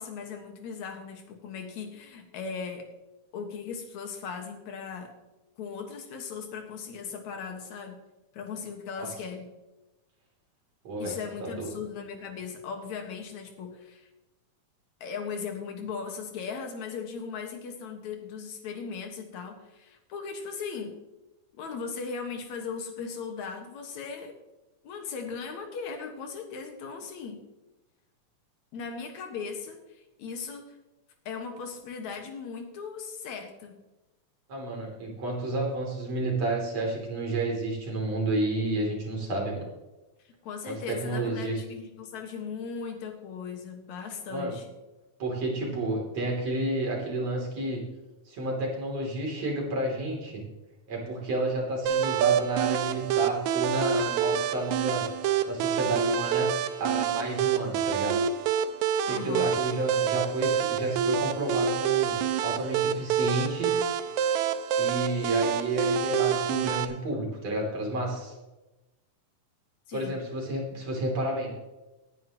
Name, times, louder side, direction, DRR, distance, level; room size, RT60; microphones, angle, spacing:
voice 1, 0.0-2.9 3.3-5.1 5.6-8.0 8.3-9.5 11.0-14.1 15.0-21.0 21.5-24.4 24.8-27.4 28.7-30.7 31.3-33.7 40.2-44.7 59.1-59.6 69.9-70.2, left 5 dB, 70° left, 4 dB, 2.9 m, -38 dB
voice 2, 10.8-11.1 11.4-11.7 34.5-39.6 40.7-41.6 44.3-44.5 45.2-47.8 48.3-50.4 50.9-55.0 55.5-56.5 56.8-58.1 59.1-62.1 62.4-63.7 64.8-68.3 69.9-71.5, right 2 dB, 60° right, -2 dB, 4.3 m, -30 dB
sound 1, 51.9-66.9, right 8 dB, 80° right, 2.0 m, -27 dB
18.5 x 9.8 x 3.0 m, 1.0 s
omnidirectional pair, 3.5 m